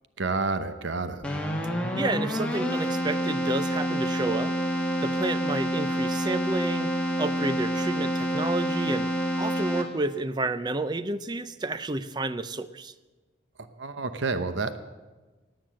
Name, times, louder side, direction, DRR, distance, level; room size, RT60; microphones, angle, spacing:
voice 1, 0.2-1.2 13.8-14.8, right 3 dB, 75° right, 10 dB, 0.9 m, -29 dB
Keyboard (musical), 1.2-10.2, equal, 5° left, 1.3 m, -28 dB
voice 2, 2.0-4.5 5.0-6.9 7.2-9.1 9.4-12.9, right 2 dB, 20° right, 13 dB, 0.5 m, -30 dB
18.0 x 8.9 x 7.5 m, 1.2 s
head